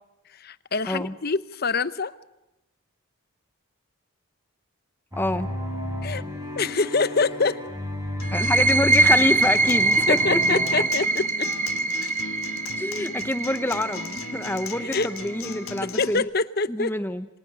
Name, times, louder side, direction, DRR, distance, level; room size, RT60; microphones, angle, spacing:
voice 1, 0.3-2.1 6.0-6.2 6.6-7.6 10.1-11.5 14.8-15.1 15.8-16.9, left 4 dB, 45° left, 15 dB, 0.9 m, -25 dB
sound 1, 5.1-10.9, left 1 dB, 15° right, 7.1 m, -32 dB
voice 2, 5.2-5.5 8.3-10.8 12.8-16.2 16.7-17.3, left 1 dB, 10° left, 11 dB, 0.8 m, -26 dB
Acoustic guitar, 8.2-16.2, left 5 dB, 75° left, 1.5 m, -38 dB
sound 2, 8.2-15.6, right 2 dB, 35° right, 1.4 m, -23 dB
29.0 x 26.0 x 6.8 m, 0.93 s
head